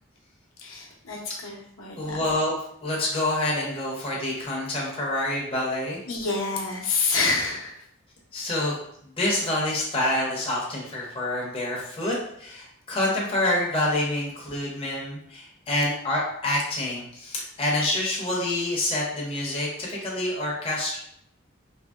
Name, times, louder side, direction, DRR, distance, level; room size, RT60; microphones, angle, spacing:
voice 1, 0.6-2.2 6.1-7.8, left 4 dB, 75° left, -2 dB, 0.6 m, -28 dB
voice 2, 2.0-2.6 2.8-6.0 8.3-8.8 9.2-21.0, left 1 dB, 25° left, -4 dB, 0.5 m, -27 dB
2.8 x 2.5 x 2.3 m, 0.70 s
head